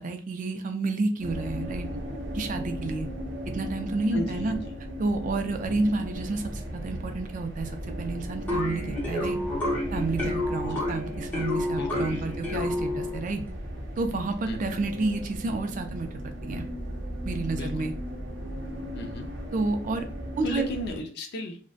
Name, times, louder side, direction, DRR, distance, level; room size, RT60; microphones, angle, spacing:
voice 1, 0.0-1.9 2.3-3.1 3.5-4.6 5.0-7.7 8.0-9.4 9.9-13.4 14.0-16.6 17.2-17.9 19.5-20.1 20.4-20.6, right 3 dB, 45° right, 5 dB, 0.3 m, -30 dB
sound 1, 1.2-21.0, equal, 70° right, 0.7 m, -36 dB
voice 2, 4.1-4.6 10.6-10.8 11.8-12.4 14.5-14.7 17.6-17.9 19.0-19.3 20.4-21.6, left 1 dB, 60° left, 4 dB, 0.4 m, -35 dB
sound 2, 8.5-13.3, left 1 dB, 10° left, 0.7 m, -30 dB
2.5 x 2.1 x 2.4 m, 0.40 s
head